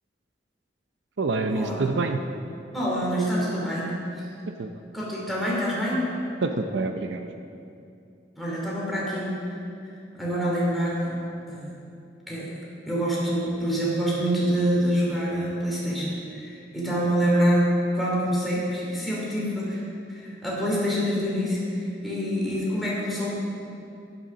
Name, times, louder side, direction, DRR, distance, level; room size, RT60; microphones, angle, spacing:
voice 1, 1.2-2.2 4.6-4.7 6.4-7.3, right 3 dB, 75° right, 6 dB, 0.6 m, -26 dB
voice 2, 2.7-3.9 4.9-6.0 8.4-9.5 10.1-11.2 11.5-11.7 12.3-12.5 12.8-17.7 17.9-19.8 20.1-23.3, equal, ahead, -6 dB, 3.0 m, -26 dB
9.8 x 9.6 x 6.1 m, 2.5 s
head